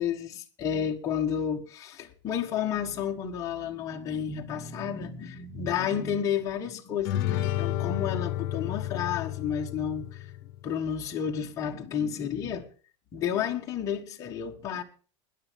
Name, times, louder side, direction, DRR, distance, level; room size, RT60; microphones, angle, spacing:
voice 1, 0.0-10.3 10.6-12.7 13.1-14.8, left 8 dB, 25° left, 1.3 m, -31 dB
sound 1, 7.0-10.7, left 13 dB, 55° left, 1.0 m, -31 dB
20.5 x 10.5 x 3.5 m
supercardioid pair, 175°, 14 cm